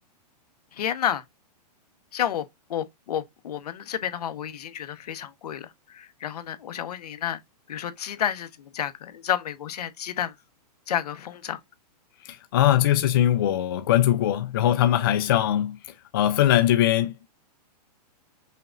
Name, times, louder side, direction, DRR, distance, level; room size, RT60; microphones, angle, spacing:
voice 1, 0.7-1.2 2.1-7.4 7.7-10.3 10.9-11.6, left 10 dB, 70° left, 1.0 m, -30 dB
voice 2, 12.2-15.8 16.1-17.3, left 12 dB, 35° left, 0.4 m, -21 dB
5.7 x 2.4 x 3.7 m
hypercardioid pair, 170°, 21 cm